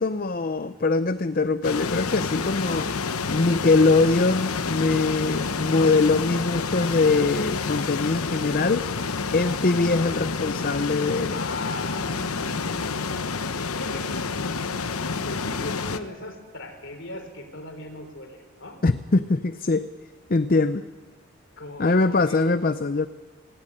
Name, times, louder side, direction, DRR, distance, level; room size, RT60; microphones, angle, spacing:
voice 1, 0.0-2.9 3.3-8.9 9.3-11.4 18.8-19.9 20.3-20.8 21.8-23.1, left 3 dB, 40° left, 12 dB, 0.6 m, -22 dB
sound 1, 1.6-16.0, left 4 dB, 90° left, 1.0 m, -29 dB
voice 2, 11.3-14.2 14.9-18.8 21.6-22.5, left 2 dB, 60° left, 6 dB, 3.6 m, -39 dB
17.5 x 17.0 x 9.9 m, 1.4 s
head